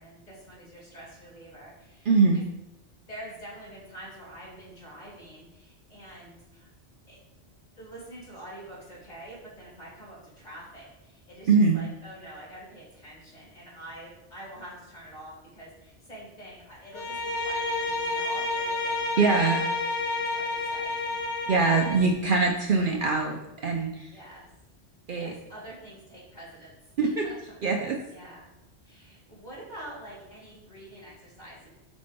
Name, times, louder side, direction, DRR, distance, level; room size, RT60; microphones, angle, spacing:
voice 1, 0.0-2.4 3.1-6.7 7.1-7.2 7.7-21.2 24.1-24.5 25.1-26.7 27.0-27.6 28.1-28.5 28.8-31.7, right 1 dB, 40° left, -5 dB, 2.6 m, -46 dB
voice 2, 2.1-2.4 11.5-11.8 19.2-19.6 21.5-24.2 25.1-25.3 27.0-27.3 27.6-28.0, right 4 dB, 55° right, 2 dB, 0.7 m, -23 dB
Bowed string instrument, 16.9-22.1, left 2 dB, 80° left, 1.2 m, -30 dB
5.3 x 4.1 x 5.1 m, 0.93 s
omnidirectional pair, 1.2 m